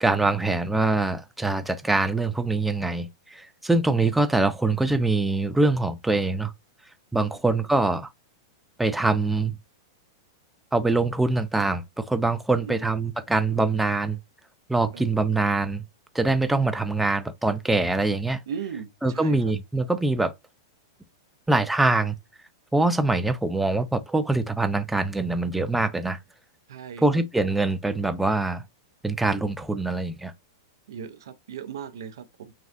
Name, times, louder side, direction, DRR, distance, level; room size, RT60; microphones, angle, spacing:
voice 1, 0.0-6.5 7.1-8.1 8.8-9.5 10.7-14.2 14.7-15.8 16.1-18.4 19.0-20.3 21.5-22.1 22.7-26.2 27.0-28.6 29.0-30.3, right 2 dB, 5° right, 0.3 m, -24 dB
voice 2, 18.5-19.4 26.7-27.0 30.9-32.5, right 7 dB, 80° right, 0.5 m, -37 dB
3.3 x 2.4 x 2.5 m
hypercardioid pair, 135°, 2 cm